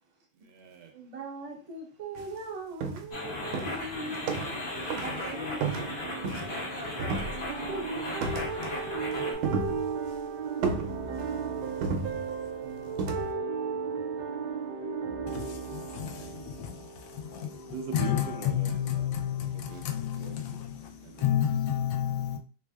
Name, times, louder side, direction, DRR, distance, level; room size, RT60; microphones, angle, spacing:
voice 1, 0.4-0.9 3.9-21.3, right 5 dB, 70° right, 1.0 m, -37 dB
voice 2, 0.9-4.7 5.0-5.7 6.0-6.2 6.5-7.3 7.7-8.0 20.5-20.7, right 2 dB, 30° right, 0.6 m, -40 dB
sound 1, 2.2-2.3 2.8-3.2 3.5-4.7 4.9-5.2 5.6-6.7 7.0-7.7 8.2-8.8 9.1-10.2 10.6-11.4 11.8-12.5 13.0-13.3, right 4 dB, 90° right, 1.4 m, -33 dB
sound 2, 3.1-9.3, left 2 dB, 55° left, 0.7 m, -36 dB
voice 3, 15.9-16.9 17.1-17.6 17.9-22.4, left 10 dB, 75° left, 1.3 m, -30 dB
3.3 x 3.3 x 2.2 m
omnidirectional pair, 2.2 m